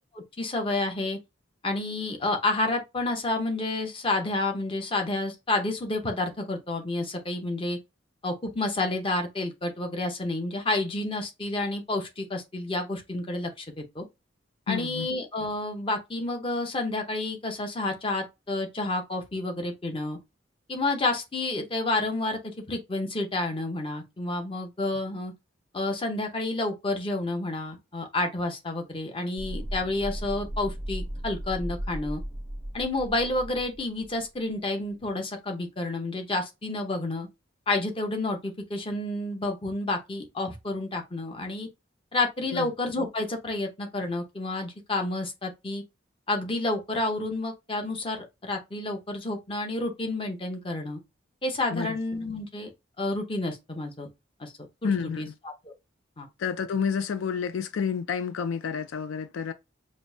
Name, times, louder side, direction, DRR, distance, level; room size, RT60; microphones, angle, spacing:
voice 1, 0.1-1.2 1.6-7.8 8.2-14.0 14.7-20.2 20.7-22.4 22.7-25.3 25.7-32.2 32.7-37.3 37.7-41.7 42.1-45.8 46.3-51.0 51.4-52.7 53.0-54.1 54.4-54.5 54.8-54.9 55.2-55.3 55.7-55.8 56.2-56.3, left 2 dB, 25° left, 0.8 m, -30 dB
voice 2, 14.7-15.1 42.5-42.7 51.7-52.0 54.8-55.3 56.4-59.5, left 6 dB, 80° left, 0.4 m, -29 dB
sound 1, 29.4-34.3 34.5-34.6, equal, 5° right, 0.4 m, -36 dB
5.1 x 2.1 x 2.7 m
head